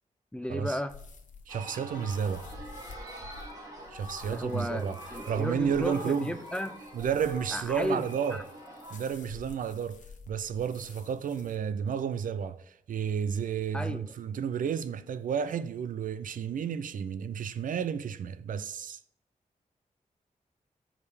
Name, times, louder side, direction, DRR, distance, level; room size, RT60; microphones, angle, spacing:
voice 1, 0.3-0.9 4.3-6.8 7.5-8.4 13.7-14.1, left 1 dB, 5° left, 0.4 m, -34 dB
sound 1, 0.9-11.6, left 5 dB, 65° left, 0.8 m, -51 dB
sound 2, 1.5-9.0, right 1 dB, 25° right, 2.0 m, -45 dB
voice 2, 1.5-2.5 3.9-5.0 5.3-6.3 6.9-8.4 8.9-10.0 10.3-19.0, right 7 dB, 80° right, 0.4 m, -31 dB
5.3 x 4.8 x 6.3 m
wide cardioid pair, 145°, 14 cm